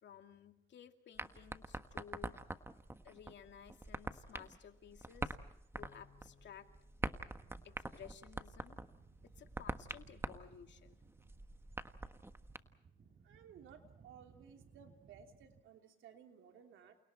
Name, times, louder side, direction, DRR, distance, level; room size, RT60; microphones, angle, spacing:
voice 1, 0.0-2.3 3.0-5.4 5.8-6.7 7.6-8.8 9.4-11.0, left 8 dB, 65° left, 6 dB, 2.5 m, -56 dB
sound 1, 1.2-12.6, right 2 dB, 10° right, 1.4 m, -46 dB
Bass guitar, 5.7-8.8, left 7 dB, 35° left, 6.4 m, -68 dB
sound 2, 7.0-15.6, right 5 dB, 50° right, 4.0 m, -64 dB
voice 2, 13.2-17.0, right 7 dB, 80° right, 5 dB, 3.0 m, -58 dB
29.5 x 28.5 x 4.4 m, 0.80 s
cardioid pair, 90°, 20 cm